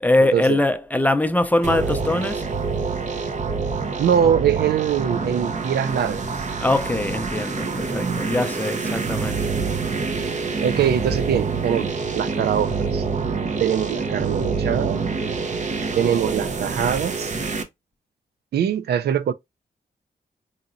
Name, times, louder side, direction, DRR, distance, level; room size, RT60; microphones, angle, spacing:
voice 1, 0.0-2.4 6.6-9.4, left 2 dB, 10° left, 0.5 m, -22 dB
sound 1, 1.6-17.6, right 4 dB, 45° right, 0.7 m, -26 dB
voice 2, 4.0-6.2 10.6-11.9 12.1-13.0 13.6-15.0 16.0-17.3 18.5-19.3, right 9 dB, 90° right, 0.4 m, -22 dB
3.9 x 2.9 x 2.5 m
wide cardioid pair, 110°, 16 cm